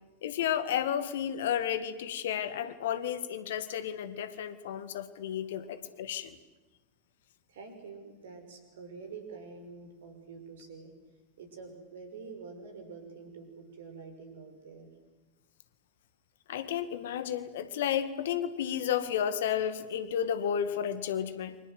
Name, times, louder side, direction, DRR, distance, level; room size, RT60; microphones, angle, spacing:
voice 1, 0.2-6.4 16.5-21.6, left 9 dB, 55° left, 12 dB, 1.9 m, -32 dB
voice 2, 7.5-10.9 11.4-14.9, right 4 dB, 60° right, 7 dB, 6.1 m, -47 dB
29.5 x 25.0 x 7.9 m, 1.2 s
figure-of-eight pair, 90°, 0 cm